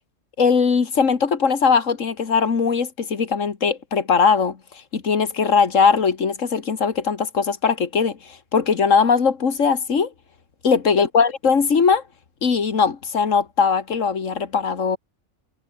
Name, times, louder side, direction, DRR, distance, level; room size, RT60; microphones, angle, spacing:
voice 1, 0.4-4.6 4.9-10.1 10.6-12.0 12.4-15.0, left 5 dB, 70° left, 2.3 m, -20 dB
omnidirectional pair, 1.4 m